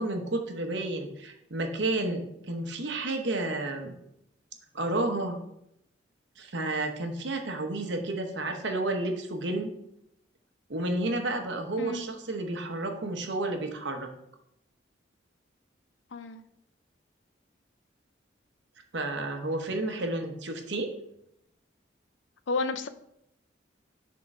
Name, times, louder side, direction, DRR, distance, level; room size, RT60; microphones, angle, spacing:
voice 1, 0.0-3.9 4.7-5.4 6.4-9.7 10.7-14.1 18.9-20.9, right 2 dB, 65° right, 4 dB, 0.9 m, -31 dB
voice 2, 11.8-12.1 16.1-16.4 22.5-22.9, left 3 dB, 75° left, 12 dB, 0.5 m, -31 dB
6.3 x 3.8 x 4.9 m, 0.78 s
head